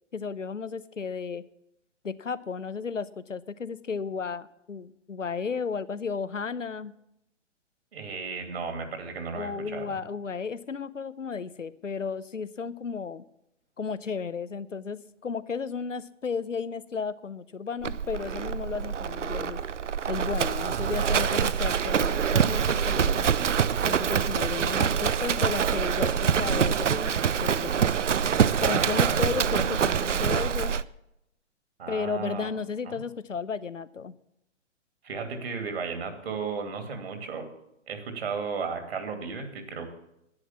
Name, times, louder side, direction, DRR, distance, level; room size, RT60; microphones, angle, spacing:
voice 1, 0.1-1.4 2.0-6.9 9.3-13.2 13.8-19.6 20.1-23.3 23.8-27.9 28.6-30.8 31.9-34.1, left 5 dB, 85° left, 16 dB, 0.8 m, -33 dB
voice 2, 7.9-10.0 20.5-21.5 28.5-29.3 31.8-32.5 32.9-33.0 35.0-37.5 37.9-39.9, right 5 dB, 55° right, 6 dB, 2.7 m, -35 dB
Livestock farm animals working animals, 17.8-30.8, right 7 dB, 75° right, 0.6 m, -25 dB
10.5 x 9.5 x 7.2 m, 0.82 s
figure-of-eight pair, 125°, 37 cm